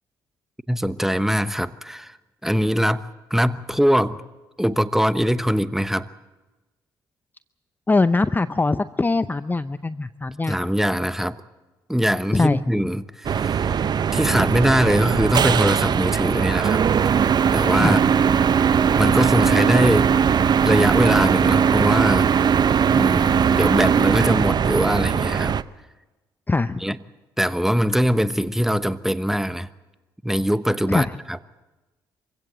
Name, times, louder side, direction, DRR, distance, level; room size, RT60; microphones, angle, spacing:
voice 1, 0.7-2.1 2.4-3.0 3.3-4.2 4.6-6.1 10.5-11.4 11.9-13.8 14.1-16.8 17.5-18.0 18.9-20.1 20.6-22.6 22.9-25.6 26.8-27.0 27.4-29.7 30.2-31.4, equal, 5° right, 1.1 m, -22 dB
voice 2, 7.9-10.6 12.3-12.6 17.8-18.0 26.5-26.8 30.9-31.1, left 3 dB, 20° left, 0.6 m, -22 dB
sound 1, 13.2-25.6, right 7 dB, 50° right, 0.7 m, -19 dB
25.0 x 16.5 x 8.1 m
hypercardioid pair, 50°, 9 cm